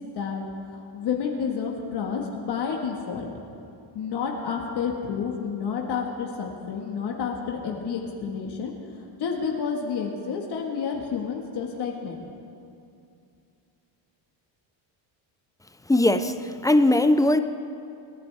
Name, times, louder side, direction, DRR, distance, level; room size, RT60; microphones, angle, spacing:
voice 1, 0.7-3.2 3.9-8.7 9.2-12.2, left 6 dB, 55° left, 0 dB, 1.8 m, -30 dB
voice 2, 15.9-17.4, left 1 dB, 10° left, 9 dB, 0.4 m, -20 dB
26.5 x 11.0 x 3.5 m, 2.5 s
cardioid pair, 120°, 47 cm